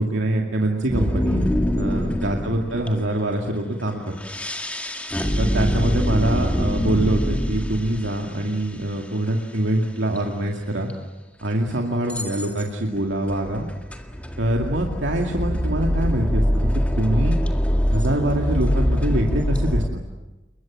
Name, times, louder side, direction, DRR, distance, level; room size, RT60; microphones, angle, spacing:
voice 1, 0.0-1.5 1.8-4.1 5.4-10.9 11.4-13.7 14.4-16.7 17.0-17.4 17.9-20.0, right 1 dB, 90° right, 1 dB, 2.3 m, -24 dB
sound 1, 0.9-3.1 4.1-8.5 10.2-10.3 10.9-11.0 12.1-12.6 13.3-19.9, equal, 10° left, 2.0 m, -24 dB
29.0 x 22.5 x 7.6 m, 1.1 s
head